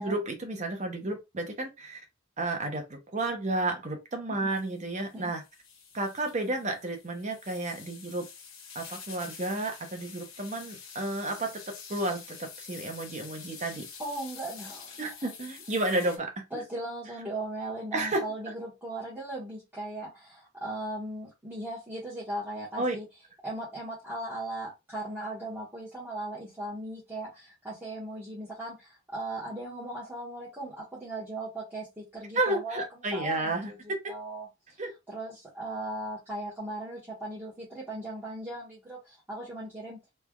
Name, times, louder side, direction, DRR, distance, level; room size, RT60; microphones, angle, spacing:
voice 1, 0.0-2.0 2.4-5.4 5.9-8.3 8.7-11.6 11.9-13.8 15.0-16.3 17.9-18.2 22.8-23.0 32.3-34.0 34.8-34.9, right 2 dB, 35° right, 0.9 m, -31 dB
sound 1, 4.5-16.2, left 6 dB, 80° left, 1.0 m, -47 dB
voice 2, 14.0-15.3 16.0-16.1 16.5-23.1 23.4-32.8 33.1-34.5 35.1-40.0, right 1 dB, 10° right, 1.4 m, -38 dB
3.3 x 3.2 x 2.4 m
head